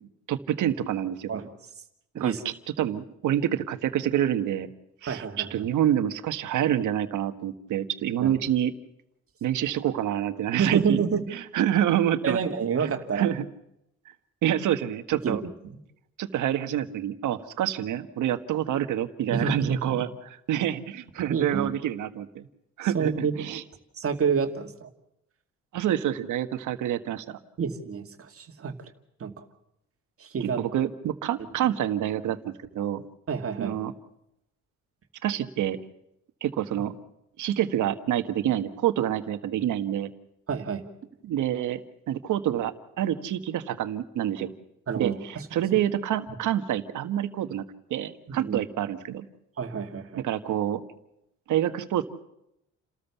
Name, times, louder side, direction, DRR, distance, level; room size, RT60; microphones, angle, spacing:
voice 1, 0.3-1.3 2.2-2.3 2.8-4.7 5.0-8.7 9.4-11.0 11.3-12.4 12.8-13.4 14.4-15.4 16.2-22.4 22.8-23.6 25.7-27.4 30.4-33.0 33.6-33.9 35.2-35.8 36.4-36.9 37.4-40.1 41.2-41.8 42.1-44.5 44.9-47.6 47.9-49.2 50.2-50.8 51.5-52.1, right 11 dB, 80° right, 9 dB, 1.6 m, -27 dB
voice 2, 5.0-5.7 8.2-8.3 10.5-11.2 12.2-13.3 15.2-15.4 15.6-15.8 19.3-20.0 21.3-21.7 22.8-23.3 24.0-24.9 27.6-28.9 29.2-29.4 30.2-30.6 33.3-33.7 40.5-40.8 44.9-45.5 48.3-48.6 49.6-50.2, right 6 dB, 50° right, 5 dB, 2.4 m, -28 dB
29.5 x 13.5 x 7.1 m, 0.81 s
cardioid pair, 90°, 30 cm